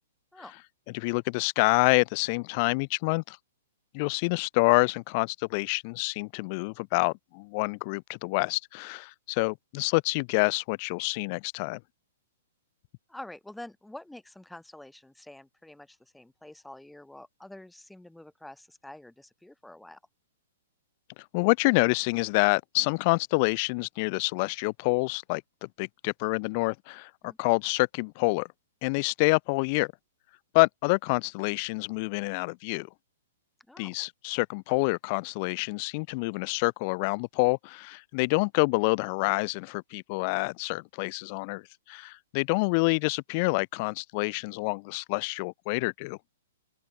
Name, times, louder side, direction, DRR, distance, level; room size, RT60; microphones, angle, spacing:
voice 1, 0.9-3.4 3.9-11.8 21.3-28.5 28.8-29.9 30.5-32.9 33.8-41.6 41.9-46.2, left 30 dB, 30° left, 0.5 m, -27 dB
voice 2, 13.1-20.0 27.2-27.4 33.7-33.9, left 1 dB, ahead, 2.6 m, -47 dB
open air
hypercardioid pair, 175°, 0 cm